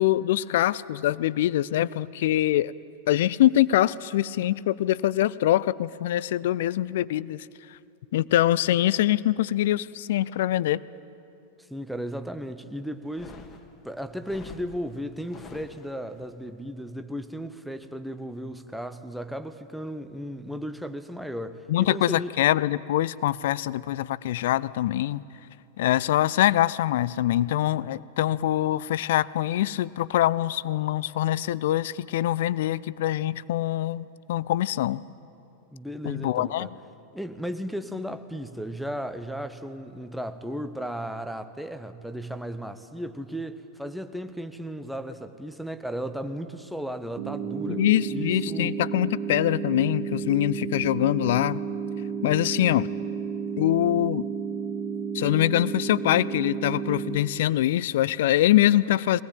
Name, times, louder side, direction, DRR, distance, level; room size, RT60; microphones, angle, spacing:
voice 1, 0.0-2.7 3.1-7.5 8.1-10.8 21.7-25.2 25.8-35.0 36.0-36.7 47.7-51.6 52.2-52.9 53.6-54.3 55.1-59.2, left 13 dB, 55° left, 20 dB, 0.5 m, -24 dB
voice 2, 11.7-13.4 13.8-22.3 35.7-36.7 37.1-47.8 48.1-48.8, equal, ahead, 9 dB, 1.1 m, -35 dB
sound 1, 13.0-16.2, left 4 dB, 25° left, 1.9 m, -47 dB
sound 2, 47.2-57.2, right 6 dB, 45° right, 1.6 m, -32 dB
22.0 x 19.0 x 8.9 m, 2.7 s
figure-of-eight pair, 90°, 0 cm